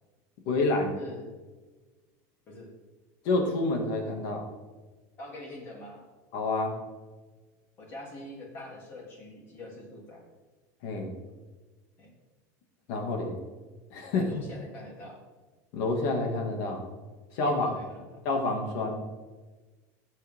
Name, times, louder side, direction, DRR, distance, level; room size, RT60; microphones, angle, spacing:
voice 1, 0.5-1.0 3.2-4.4 6.3-6.7 10.8-11.1 12.9-13.4 13.9-14.3 15.7-16.8 17.3-17.7 18.2-19.0, left 2 dB, 45° left, 2 dB, 2.5 m, -28 dB
voice 2, 1.0-1.3 2.5-2.7 5.2-6.0 7.8-10.2 12.0-12.1 14.1-15.2 17.4-18.1, left 1 dB, 25° left, -2 dB, 3.4 m, -44 dB
20.0 x 8.3 x 3.9 m, 1.3 s
cardioid pair, 180°, 9 cm